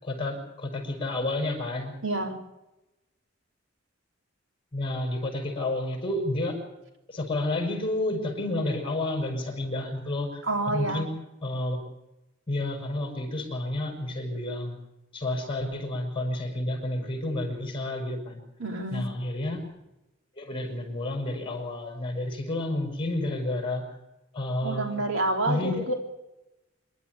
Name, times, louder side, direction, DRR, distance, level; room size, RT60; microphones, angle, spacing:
voice 1, 0.0-1.9 4.7-6.6 7.1-11.1 11.4-11.8 12.5-14.8 15.1-18.4 18.9-19.7 20.4-23.8 24.3-25.0 25.5-25.8, left 1 dB, 25° left, 2 dB, 6.2 m, -30 dB
voice 2, 2.0-2.4 10.4-11.1 18.6-19.1 24.6-25.9, right 2 dB, 85° right, 3 dB, 3.8 m, -28 dB
27.0 x 12.5 x 9.4 m, 0.98 s
head